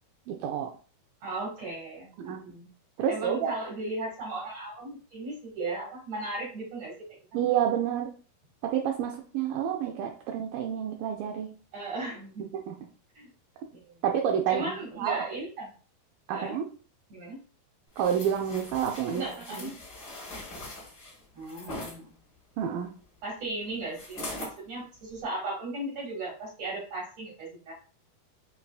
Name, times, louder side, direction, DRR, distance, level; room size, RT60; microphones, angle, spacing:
voice 1, 0.3-0.7 2.2-2.5 3.0-3.5 7.3-8.2 8.6-11.5 12.7-12.8 14.0-15.2 16.3-16.7 18.0-19.2 19.5-19.7 22.6-22.9, right 9 dB, 90° right, 3 dB, 1.9 m, -29 dB
voice 2, 1.2-2.7 3.1-6.9 7.3-7.4 11.7-12.6 13.2-13.3 13.7-13.9 14.5-15.7 16.3-16.6 17.1-17.4 19.1-19.7 21.3-22.1 23.2-27.7, right 2 dB, 55° right, -3 dB, 2.0 m, -36 dB
sound 1, 18.0-22.0 23.9-24.6 25.1-25.2, left 1 dB, 35° left, 2.0 m, -41 dB
7.3 x 2.7 x 2.3 m, 0.39 s
omnidirectional pair, 4.4 m